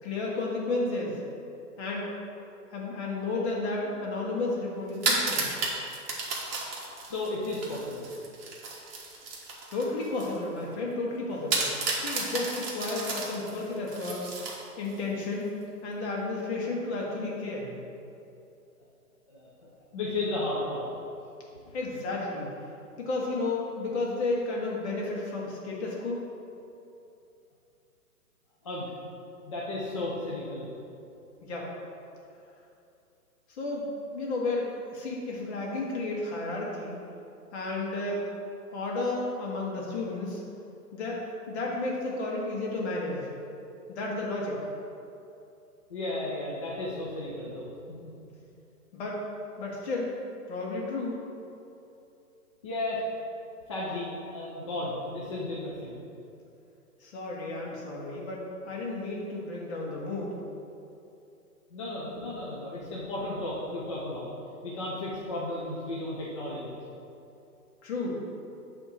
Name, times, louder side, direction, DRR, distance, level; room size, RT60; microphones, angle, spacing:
voice 1, 0.0-1.2 1.8-2.0 2.7-5.5 9.7-11.7 12.0-14.2 14.8-15.5 15.8-17.7 21.7-22.5 23.0-26.2 31.4-31.7 33.5-37.0 37.5-38.2 38.7-40.4 40.9-43.3 43.9-44.6 48.9-49.2 49.6-50.2 50.5-51.2 57.0-60.4 67.8-68.2, left 2 dB, 45° left, -3 dB, 1.9 m, -32 dB
sound 1, 4.9-10.4 10.7-10.8 11.5-15.0, right 3 dB, 35° right, 1.6 m, -33 dB
voice 2, 7.0-8.1 19.3-19.5 19.9-20.8 21.7-21.8 28.6-28.9 29.5-30.7 45.9-47.7 52.6-53.0 53.7-55.9 61.7-64.3 64.6-66.7, left 2 dB, 20° left, -6 dB, 0.5 m, -34 dB
8.5 x 3.6 x 6.2 m, 2.7 s
hypercardioid pair, 150°, 47 cm